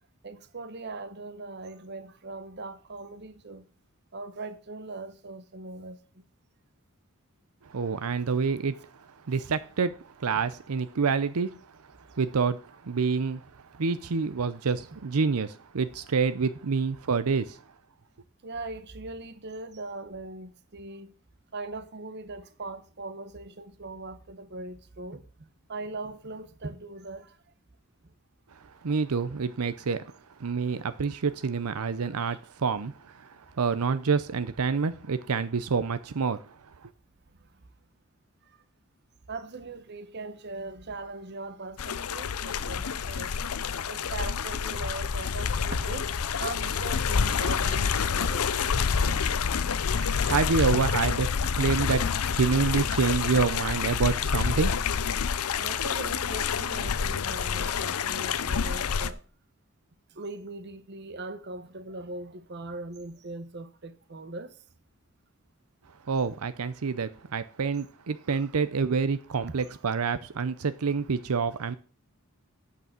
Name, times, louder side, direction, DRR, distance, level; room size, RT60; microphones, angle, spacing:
voice 1, 0.2-3.6 4.1-6.2 10.3-10.4 18.4-21.1 21.5-27.4 28.0-28.1 32.3-32.4 37.5-37.6 38.4-38.6 39.3-43.3 43.9-49.6 50.0-50.3 54.2-54.3 55.6-59.2 60.1-64.6 69.5-69.6, right 2 dB, 50° right, 0.9 m, -40 dB
voice 2, 7.6-11.5 12.1-17.6 28.6-30.0 30.4-36.9 49.8-49.9 50.2-51.2 51.5-54.8 66.1-71.8, right 5 dB, 80° right, 0.6 m, -28 dB
sound 1, 41.8-59.1, left 6 dB, 80° left, 0.6 m, -28 dB
8.3 x 6.8 x 7.5 m
head